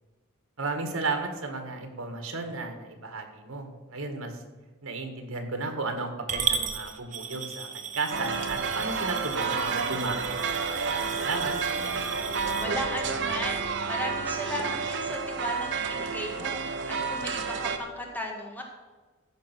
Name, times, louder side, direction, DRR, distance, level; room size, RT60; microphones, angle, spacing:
voice 1, 0.6-4.4 4.8-10.5 10.9-11.5, right 3 dB, 85° right, 5 dB, 1.9 m, -34 dB
Coin (dropping) / Glass, 6.3-12.6, right 7 dB, 35° right, 1.1 m, -35 dB
sound 1, 8.1-17.8, right 5 dB, 60° right, 1.0 m, -30 dB
voice 2, 12.6-16.6 16.9-18.6, left 1 dB, 10° left, 0 dB, 1.8 m, -36 dB
15.0 x 5.6 x 6.2 m, 1.3 s
head